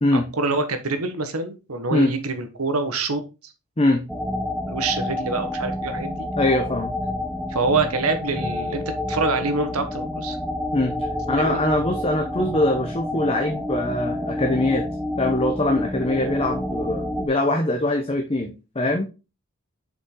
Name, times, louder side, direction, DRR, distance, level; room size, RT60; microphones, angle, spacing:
voice 1, 0.1-3.2 4.7-6.3 7.5-8.8 9.1-10.4 11.4-11.6, right 3 dB, 85° right, 8 dB, 1.4 m, -25 dB
sound 1, 4.1-17.3, left 1 dB, ahead, 0.6 m, -29 dB
voice 2, 6.4-6.9 10.7-11.0 11.3-14.8 15.2-19.1, left 1 dB, 25° left, 4 dB, 0.9 m, -22 dB
6.9 x 5.4 x 3.8 m, 0.29 s
head